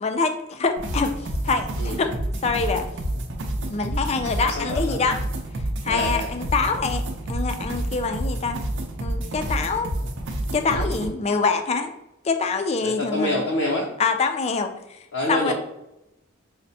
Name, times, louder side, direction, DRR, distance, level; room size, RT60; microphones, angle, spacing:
voice 1, 0.0-2.1 2.4-2.9 3.7-5.2 5.8-8.6 9.0-9.9 10.5-11.9 12.2-13.4 14.0-15.0 15.3-15.5, left 4 dB, 30° left, 7 dB, 0.3 m, -25 dB
sound 1, 0.8-11.1, right 1 dB, 60° right, 0.5 m, -29 dB
voice 2, 4.5-5.0 5.9-6.3 10.7-11.1 12.8-14.0 15.1-15.5, left 1 dB, 90° left, -3 dB, 0.6 m, -27 dB
5.2 x 2.1 x 2.7 m, 0.88 s
head